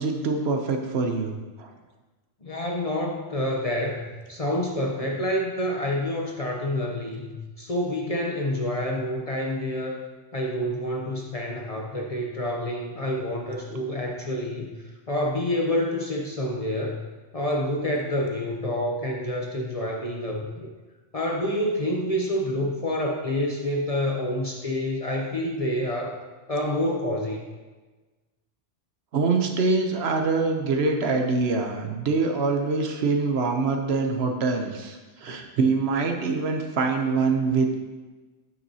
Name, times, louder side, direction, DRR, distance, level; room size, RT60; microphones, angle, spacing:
voice 1, 0.0-1.7 13.7-13.8 29.1-37.7, right 4 dB, 65° right, 4 dB, 0.9 m, -24 dB
voice 2, 2.4-10.0 10.3-17.0 17.3-20.7 21.1-26.2 26.5-27.5, left 1 dB, 40° left, -1 dB, 0.6 m, -28 dB
9.1 x 6.0 x 2.8 m, 1.3 s
omnidirectional pair, 1.2 m